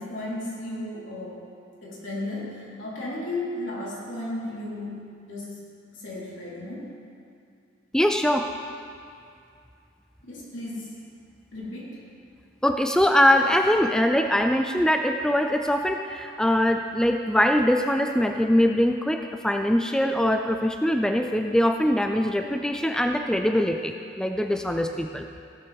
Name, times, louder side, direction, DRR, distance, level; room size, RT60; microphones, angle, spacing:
voice 1, 0.0-1.5 1.8-6.9 10.2-11.0 11.5-12.0, left 1 dB, 80° left, -6 dB, 3.7 m, -35 dB
voice 2, 7.9-8.5 12.6-25.3, equal, 5° left, 5 dB, 0.3 m, -22 dB
15.5 x 12.0 x 3.5 m, 2.4 s
head